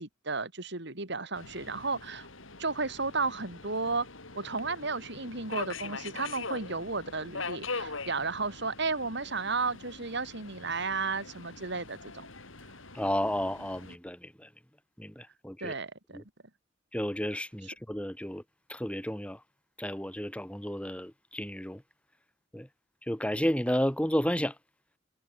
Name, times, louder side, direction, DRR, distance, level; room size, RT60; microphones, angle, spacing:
voice 1, 0.0-2.3 2.6-4.1 4.3-12.3 15.6-16.2, right 4 dB, 60° right, 3.7 m, -33 dB
Subway metro underground, 1.3-14.0, left 4 dB, 80° left, 5.3 m, -43 dB
voice 2, 12.9-14.5 15.0-15.7 16.1-16.2 16.9-18.4 18.7-19.4 19.8-21.8 22.5-22.7 23.0-24.6, equal, 5° left, 3.3 m, -32 dB
head